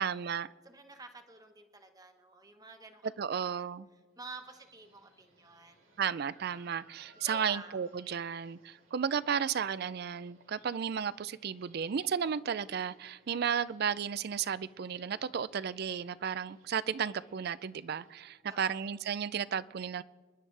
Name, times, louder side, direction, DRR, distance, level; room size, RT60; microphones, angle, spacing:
voice 1, 0.0-0.5 3.2-3.9 6.0-20.0, right 7 dB, 50° right, 18 dB, 0.3 m, -33 dB
voice 2, 0.6-3.1 3.4-3.6 4.2-5.8 7.2-7.8 18.5-18.9, right 3 dB, 15° right, 6 dB, 1.0 m, -49 dB
sound 1, 4.2-18.2, right 3 dB, 85° right, 4.7 m, -64 dB
27.0 x 11.0 x 3.3 m, 1.4 s
head